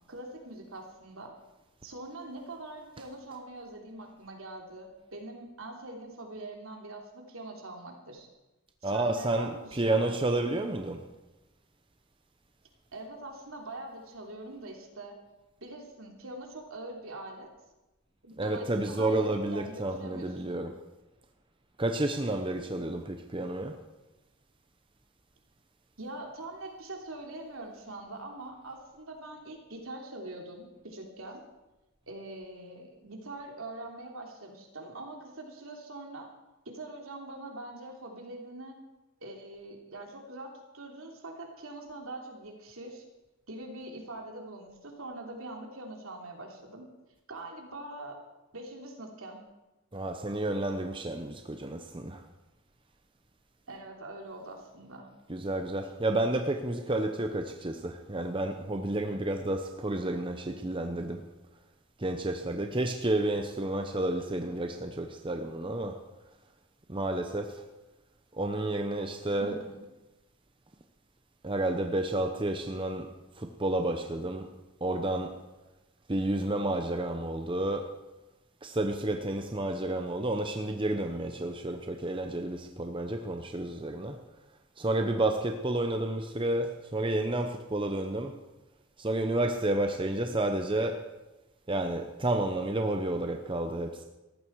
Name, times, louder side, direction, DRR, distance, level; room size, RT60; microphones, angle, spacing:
voice 1, 0.1-1.3 1.8-8.3 8.8-10.2 12.9-15.1 15.6-17.5 18.2-20.6 26.0-31.4 32.1-36.3 36.6-38.8 39.2-43.0 43.5-46.8 47.3-48.2 48.5-49.4 53.7-55.1 69.4-69.8, right 2 dB, 70° right, 3.2 m, -43 dB
voice 2, 8.8-11.1 18.4-20.8 21.8-23.8 49.9-52.2 55.3-61.2 62.0-66.0 66.9-67.6 68.3-69.6 71.4-73.1 73.4-74.5 74.8-75.4 76.1-78.0 78.6-84.2 84.8-88.4 89.0-91.1 91.7-94.0, right 1 dB, 25° right, 0.9 m, -30 dB
18.0 x 14.5 x 4.7 m
head